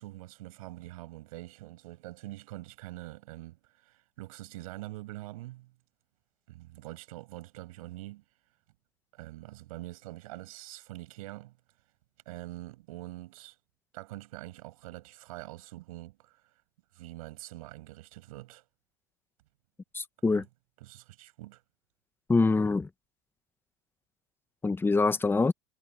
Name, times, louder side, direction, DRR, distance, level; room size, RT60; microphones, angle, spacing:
voice 1, 0.0-5.7 6.5-8.2 9.1-11.6 12.3-13.6 13.9-16.4 16.9-18.6 20.2-20.5 20.8-21.6, right 18 dB, 85° right, 7.0 m, -44 dB
voice 2, 19.9-20.4 22.3-22.9 24.6-25.5, left 3 dB, 10° left, 1.1 m, -25 dB
supercardioid pair, 115°, 18 cm